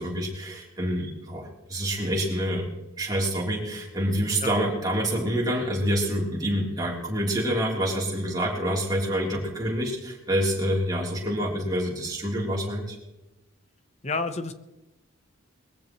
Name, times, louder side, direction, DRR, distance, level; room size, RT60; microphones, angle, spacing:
voice 1, 0.0-2.6 3.0-12.9, equal, 20° right, -3 dB, 3.4 m, -27 dB
voice 2, 14.0-14.5, left 3 dB, 30° left, 9 dB, 0.9 m, -29 dB
21.5 x 15.0 x 3.1 m, 1.0 s
head